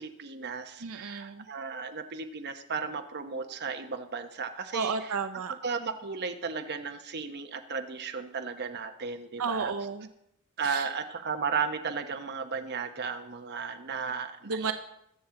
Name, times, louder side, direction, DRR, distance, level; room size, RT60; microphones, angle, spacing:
voice 1, 0.0-5.1 5.6-9.7 10.6-14.7, right 5 dB, 50° right, 6 dB, 1.0 m, -35 dB
voice 2, 0.8-1.5 4.7-5.5 9.4-10.1 10.6-10.9 14.4-14.7, right 5 dB, 80° right, 8 dB, 0.7 m, -32 dB
21.5 x 7.3 x 3.8 m, 0.78 s
head